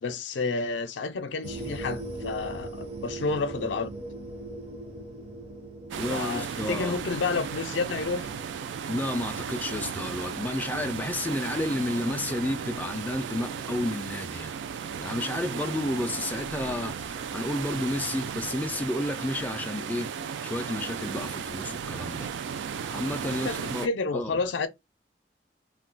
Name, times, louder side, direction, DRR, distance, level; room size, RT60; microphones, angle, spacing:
voice 1, 0.0-3.9 6.1-8.3 23.4-24.7, left 4 dB, 80° left, 0.5 m, -30 dB
sound 1, 1.4-8.6, right 2 dB, 35° right, 0.7 m, -40 dB
sound 2, 5.9-23.9, right 6 dB, 80° right, 0.3 m, -35 dB
voice 2, 6.0-7.0 8.9-14.6 15.0-20.1 20.4-22.3 22.9-23.9 24.1-24.4, left 1 dB, 10° left, 0.3 m, -31 dB
2.3 x 2.2 x 3.7 m
head